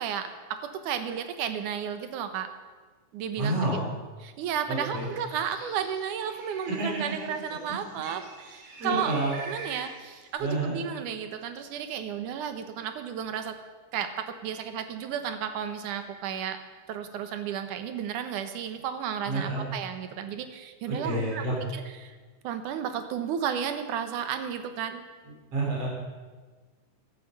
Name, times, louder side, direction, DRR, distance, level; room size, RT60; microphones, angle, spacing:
voice 1, 0.0-2.5 3.1-3.8 4.2-9.1 9.4-13.6 13.9-16.6 16.9-22.2 22.4-25.0, right 8 dB, 70° right, 9 dB, 2.5 m, -33 dB
voice 2, 3.4-3.8 4.7-5.1 6.7-6.9 8.8-9.3 10.4-10.7 19.3-19.6 20.9-21.5 25.5-25.9, right 1 dB, 45° right, -3 dB, 4.9 m, -29 dB
Bird, 4.8-10.3, right 2 dB, 90° right, 4.7 m, -46 dB
14.5 x 12.0 x 6.6 m, 1.4 s
omnidirectional pair, 3.8 m